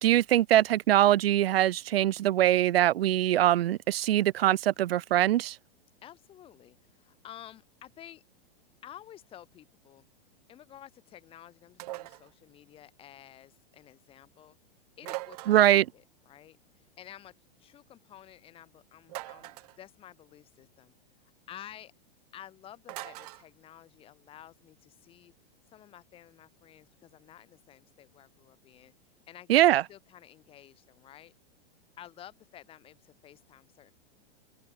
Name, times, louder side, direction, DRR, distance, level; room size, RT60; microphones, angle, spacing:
voice 1, 0.0-5.6 15.5-15.9 29.5-29.8, right 13 dB, 75° right, 0.8 m, -23 dB
voice 2, 6.0-8.2 8.8-10.0 10.5-14.6 15.0-20.9 21.5-21.9 22.3-25.3 25.7-28.9 29.3-29.6 29.9-31.3 32.0-33.9, left 11 dB, 20° left, 7.9 m, -52 dB
sound 1, 11.8-12.3 15.0-15.8 19.1-19.8 22.9-23.4, right 20 dB, 40° right, 3.6 m, -41 dB
open air
supercardioid pair, 170°, 30 cm